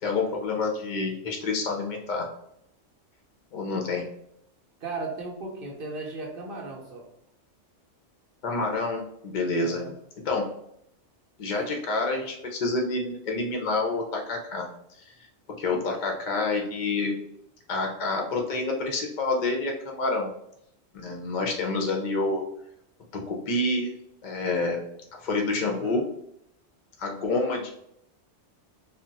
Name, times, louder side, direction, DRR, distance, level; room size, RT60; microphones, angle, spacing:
voice 1, 0.0-2.3 3.5-4.1 8.4-9.8 10.2-10.5 11.4-14.7 15.0-15.1 15.6-17.1 17.7-20.3 20.9-22.4 23.1-23.9 24.2-24.8 25.1-26.0 27.0-27.7, left 3 dB, 55° left, 1 dB, 0.5 m, -28 dB
voice 2, 4.8-7.1 9.6-9.9 25.6-26.0, right 3 dB, 60° right, -1 dB, 0.7 m, -36 dB
2.3 x 2.1 x 3.8 m, 0.76 s
omnidirectional pair, 1.2 m